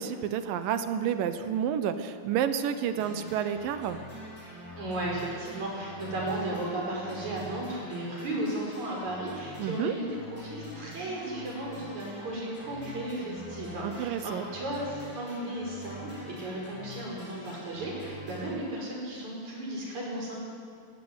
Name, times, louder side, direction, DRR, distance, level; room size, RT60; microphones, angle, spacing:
voice 1, 0.0-4.0 9.6-9.9 13.8-14.4, right 8 dB, 75° right, 10 dB, 2.6 m, -30 dB
sound 1, 2.9-18.5, equal, 15° left, 5.0 m, -45 dB
voice 2, 4.8-20.4, right 1 dB, 50° right, -3 dB, 6.7 m, -35 dB
17.0 x 16.0 x 9.7 m, 2.2 s
omnidirectional pair, 4.1 m